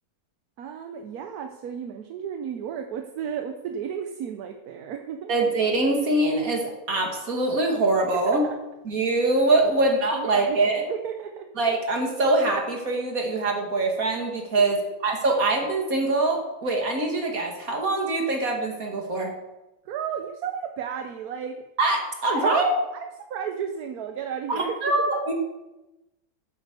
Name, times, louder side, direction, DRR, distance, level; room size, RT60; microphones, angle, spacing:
voice 1, 0.6-5.3 8.1-8.5 9.8-11.5 14.6-14.7 19.9-21.7 22.3-22.6 22.9-23.0 23.3-25.1, right 8 dB, 85° right, 6 dB, 1.3 m, -33 dB
voice 2, 5.3-8.5 8.9-10.8 11.6-19.3 21.8-22.7 24.5-25.3, right 2 dB, 70° right, 1 dB, 2.6 m, -23 dB
9.8 x 8.1 x 6.8 m, 1.0 s
omnidirectional pair, 1.6 m